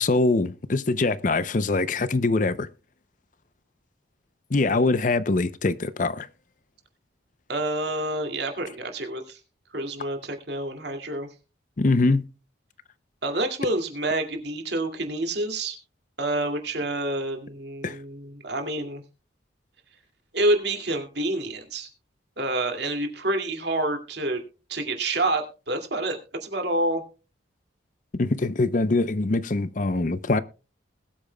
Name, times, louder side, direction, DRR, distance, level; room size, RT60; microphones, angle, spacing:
voice 1, 0.0-2.7 4.5-6.3 11.8-12.2 17.8-18.0 28.2-30.4, left 3 dB, 40° left, 0.6 m, -23 dB
voice 2, 7.5-9.4 9.7-11.3 13.2-15.8 16.2-19.0 20.3-21.9 22.4-24.4 24.7-27.0, right 1 dB, 60° right, 2.3 m, -28 dB
20.5 x 8.6 x 2.2 m
head